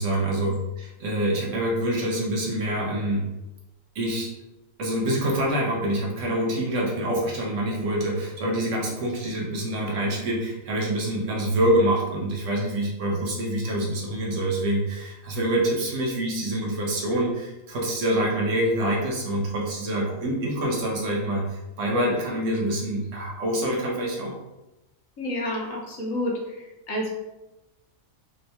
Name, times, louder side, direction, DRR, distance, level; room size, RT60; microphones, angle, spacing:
voice 1, 0.0-3.3 3.9-4.3 4.8-24.3, right 1 dB, 65° right, -2 dB, 1.2 m, -26 dB
voice 2, 25.2-26.3 26.9-27.1, left 1 dB, 75° left, -2 dB, 1.3 m, -28 dB
3.5 x 2.9 x 3.3 m, 0.99 s
omnidirectional pair, 1.4 m